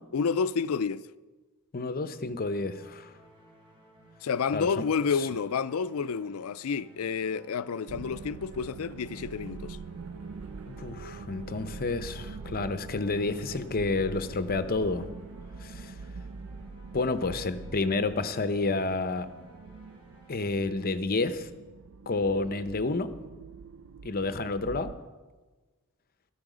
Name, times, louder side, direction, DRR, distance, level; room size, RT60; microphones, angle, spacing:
voice 1, 0.1-1.1 4.2-9.8, left 5 dB, 75° left, 0.4 m, -29 dB
voice 2, 1.7-3.1 4.5-4.7 10.7-15.1 15.6-15.9 16.9-19.3 20.3-21.5 22.1-23.1 24.0-24.9, left 3 dB, 45° left, 0.7 m, -30 dB
sound 1, 2.5-21.4, right 1 dB, 25° right, 4.4 m, -57 dB
sound 2, 7.9-25.0, right 4 dB, 65° right, 0.4 m, -44 dB
13.0 x 12.5 x 5.0 m
head